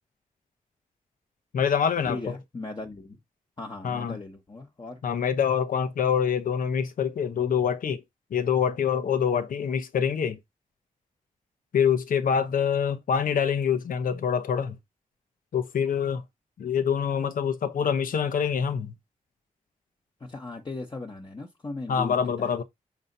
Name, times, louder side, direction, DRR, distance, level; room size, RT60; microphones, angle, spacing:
voice 1, 1.5-2.4 3.8-4.2 5.0-8.0 8.3-10.4 11.7-14.8 15.5-16.2 16.6-18.9 21.9-22.6, left 7 dB, 85° left, 0.9 m, -25 dB
voice 2, 2.0-3.2 3.6-5.0 20.2-22.6, left 2 dB, 30° left, 1.3 m, -38 dB
7.1 x 2.9 x 5.3 m
wide cardioid pair, 95°, 14 cm